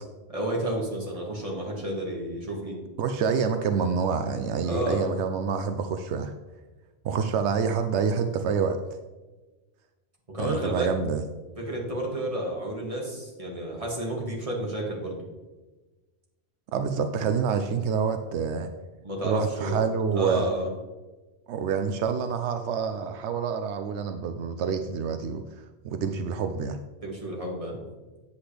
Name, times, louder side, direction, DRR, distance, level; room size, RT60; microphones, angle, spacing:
voice 1, 0.3-2.8 4.6-5.1 10.3-10.9 11.6-15.2 19.0-19.8 20.1-20.7 27.0-27.8, right 1 dB, 30° right, -2 dB, 1.9 m, -31 dB
voice 2, 3.0-6.3 7.0-8.8 10.4-11.2 16.7-18.7 19.2-20.5 21.5-25.4 25.8-26.8, right 6 dB, 85° right, 8 dB, 0.9 m, -27 dB
8.2 x 7.8 x 3.3 m, 1.2 s
omnidirectional pair, 1.1 m